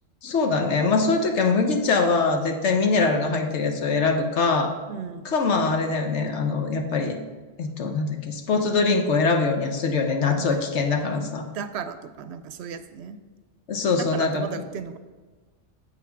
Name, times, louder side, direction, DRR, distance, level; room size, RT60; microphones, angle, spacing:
voice 1, 0.2-4.7 5.2-7.2 7.6-11.4 13.7-14.4, left 4 dB, 75° left, 4 dB, 1.1 m, -23 dB
voice 2, 4.9-5.3 10.4-10.6 11.2-13.2 14.0-15.0, right 7 dB, 70° right, 10 dB, 0.8 m, -35 dB
7.7 x 5.8 x 4.5 m, 1.3 s
omnidirectional pair, 1.2 m